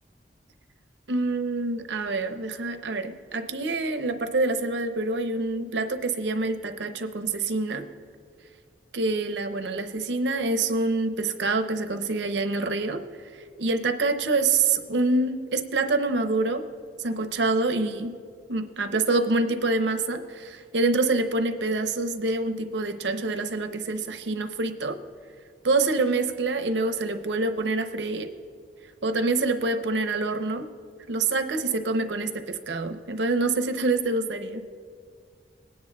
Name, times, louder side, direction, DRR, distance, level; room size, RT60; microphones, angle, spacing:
voice 1, 1.1-7.8 8.9-13.0 13.6-16.7 17.0-18.2 18.5-25.0 25.6-28.3 29.0-30.7 31.1-34.7, right 3 dB, 80° right, 8 dB, 0.7 m, -26 dB
19.5 x 9.6 x 2.3 m, 2.1 s
head